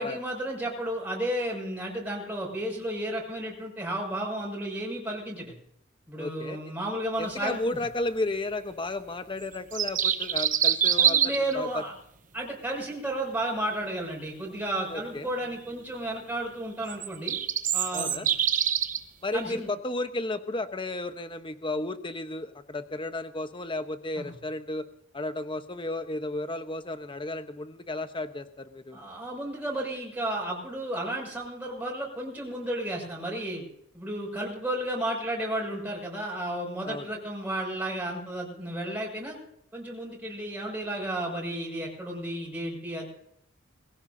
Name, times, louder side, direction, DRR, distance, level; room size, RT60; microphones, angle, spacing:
voice 1, 0.0-5.5 6.1-7.8 11.0-11.9 12.3-17.4 17.7-18.3 19.3-19.7 24.2-24.3 28.9-33.6 33.9-39.4 39.7-43.1, right 1 dB, 10° right, -2 dB, 6.2 m, -33 dB
voice 2, 6.2-6.6 7.2-11.7 14.9-15.3 17.9-18.3 19.2-24.8 25.1-29.0 36.8-37.1, left 2 dB, 25° left, 9 dB, 1.0 m, -33 dB
sound 1, 9.5-11.5 16.9-19.0, right 9 dB, 45° right, 0.9 m, -25 dB
22.5 x 16.0 x 2.8 m, 0.71 s
head